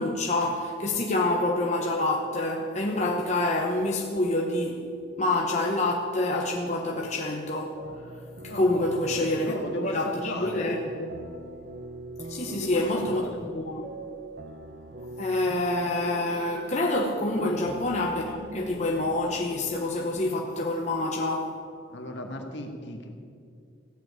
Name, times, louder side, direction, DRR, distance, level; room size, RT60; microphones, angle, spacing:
voice 1, 0.0-4.8 5.2-7.7 8.4-11.2 12.3-13.9 15.2-21.5, left 2 dB, 35° left, 0 dB, 1.0 m, -27 dB
sound 1, 7.8-19.8, right 2 dB, 50° right, 0.9 m, -42 dB
voice 2, 8.5-8.8 9.1-10.7 12.5-13.4 17.4-17.6 21.9-23.2, left 1 dB, 65° left, 3 dB, 2.0 m, -36 dB
15.5 x 7.8 x 9.8 m, 2.4 s
head